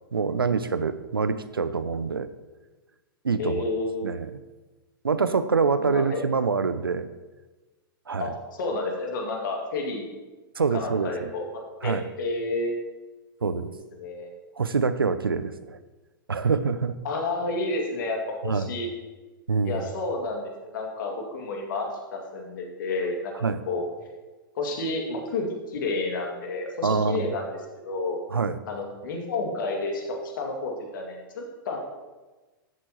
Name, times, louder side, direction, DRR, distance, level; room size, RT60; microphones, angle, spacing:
voice 1, 0.1-2.3 3.2-3.6 4.0-4.4 5.0-7.1 8.1-8.3 10.6-11.3 11.8-12.1 13.4-13.7 14.6-15.8 16.3-17.0 18.4-18.7 19.5-19.9 23.4-23.6 26.8-27.3 28.3-28.6, right 5 dB, 90° right, 13 dB, 0.6 m, -25 dB
voice 2, 3.4-4.1 5.8-6.2 8.2-8.3 8.6-10.1 10.7-12.8 13.4-13.7 14.0-14.3 17.0-18.9 19.6-23.3 23.7-23.9 24.6-27.4 27.8-28.2 28.7-31.8, left 2 dB, 65° left, 1 dB, 2.3 m, -30 dB
13.5 x 7.8 x 3.0 m, 1.2 s
hypercardioid pair, 105°, 12 cm